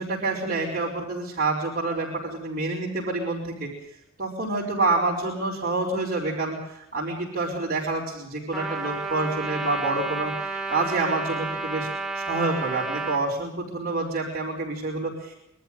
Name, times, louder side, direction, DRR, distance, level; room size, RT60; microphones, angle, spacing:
voice 1, 0.0-3.7 4.2-10.3 10.7-11.9 12.1-15.3, right 2 dB, 40° right, -6 dB, 5.6 m, -27 dB
Trumpet, 8.5-13.2, right 3 dB, ahead, 3.5 m, -31 dB
24.0 x 14.0 x 8.9 m, 0.83 s
head